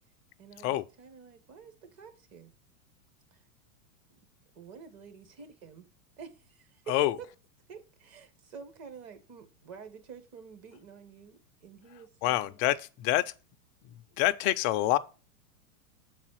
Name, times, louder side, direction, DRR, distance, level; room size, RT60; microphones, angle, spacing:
voice 1, 0.4-2.5 3.3-3.4 4.1-4.2 4.5-5.9 6.2-6.9 7.7-12.6, right 6 dB, 35° right, 1.4 m, -49 dB
voice 2, 12.2-13.3 13.8-15.0, left 15 dB, 30° left, 0.4 m, -27 dB
7.2 x 4.2 x 6.1 m
supercardioid pair, 135°, 44 cm